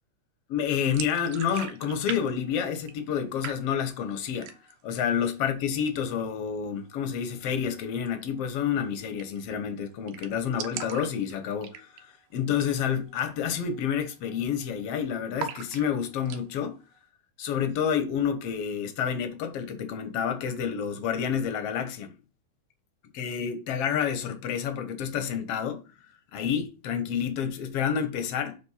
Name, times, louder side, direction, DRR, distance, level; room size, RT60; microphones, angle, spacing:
voice 1, 0.5-4.5 4.8-11.9 12.3-16.8 17.4-22.1 23.1-25.8 26.3-28.6, left 8 dB, 60° left, 1.9 m, -29 dB
sound 1, 0.9-2.2 2.5-3.2 3.4-4.0 4.3-4.9 5.2-5.3 5.6-6.3 8.0-8.1 8.4-8.5 8.7-8.8 9.2-9.5 9.8-9.9 10.1-12.1 12.5-12.8 13.1-13.2 13.8-14.0 14.3-14.9 15.4-16.4, right 8 dB, 80° right, 2.6 m, -39 dB
7.2 x 4.5 x 5.7 m
omnidirectional pair, 3.7 m